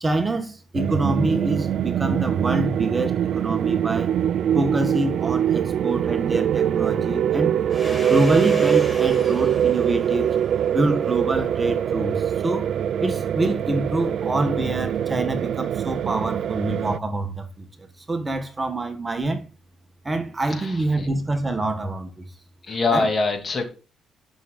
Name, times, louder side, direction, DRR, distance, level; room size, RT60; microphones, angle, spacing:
voice 1, 0.0-4.1 4.5-7.5 7.9-10.4 10.7-12.7 13.0-17.7 18.1-19.4 20.0-22.2 22.9-23.1, right 2 dB, 20° right, 1.3 m, -26 dB
sound 1, 0.7-17.0, right 9 dB, 65° right, 0.3 m, -23 dB
Domestic sounds home sounds, 7.7-12.1, right 1 dB, ahead, 4.6 m, -35 dB
voice 2, 20.5-21.1 22.6-23.7, left 3 dB, 35° left, 2.5 m, -24 dB
11.0 x 6.2 x 2.3 m
cardioid pair, 90°, 0 cm